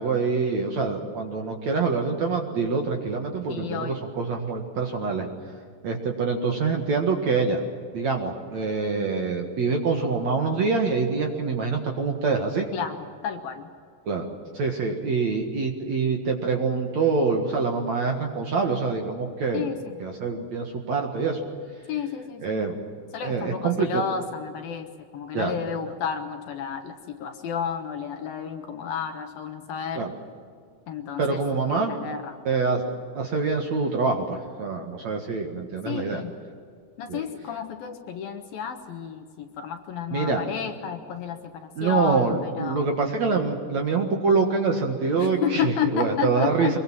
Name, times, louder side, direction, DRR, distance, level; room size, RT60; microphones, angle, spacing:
voice 1, 0.0-5.3 5.8-7.6 7.9-12.7 14.1-14.3 14.5-19.7 20.0-21.4 22.4-22.7 23.2-24.0 25.3-25.5 30.0-30.1 31.2-31.9 32.5-32.8 33.2-36.2 37.1-37.2 40.1-40.4 41.8-46.8, right 4 dB, 55° right, 2 dB, 2.3 m, -25 dB
voice 2, 3.5-4.0 12.7-13.0 13.2-13.7 19.5-19.9 21.9-22.6 23.1-30.1 30.9-31.4 31.7-32.3 35.9-36.3 37.0-42.8 45.2-46.7, left 7 dB, 65° left, 6 dB, 2.6 m, -31 dB
24.5 x 22.5 x 7.5 m, 2.1 s
omnidirectional pair, 5.0 m